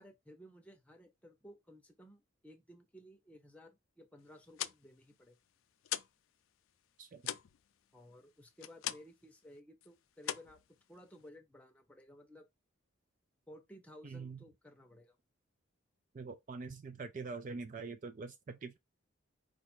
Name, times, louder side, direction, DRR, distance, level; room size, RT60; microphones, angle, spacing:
voice 1, 0.0-5.4 7.9-10.6 10.9-12.5 13.5-15.2, equal, 5° left, 0.8 m, -57 dB
sound 1, 4.3-6.3 6.5-9.3 9.6-9.9 10.2-11.3, left 12 dB, 75° left, 0.4 m, -42 dB
voice 2, 7.0-7.3 14.0-14.4 16.1-18.8, right 4 dB, 35° right, 0.3 m, -44 dB
4.8 x 2.5 x 4.4 m
head